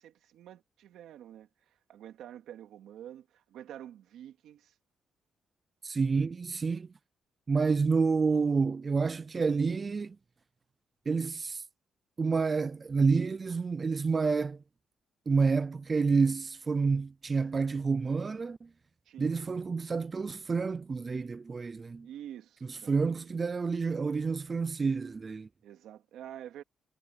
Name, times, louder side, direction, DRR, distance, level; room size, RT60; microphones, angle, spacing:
voice 1, 0.0-4.8 19.0-19.4 22.0-23.3 25.6-26.6, right 11 dB, 90° right, 2.5 m, -48 dB
voice 2, 5.8-6.9 7.5-10.2 11.1-11.6 12.2-14.6 15.3-18.6 19.2-22.1 22.9-25.5, right 4 dB, 25° right, 0.5 m, -29 dB
cardioid pair, 155°, 0 cm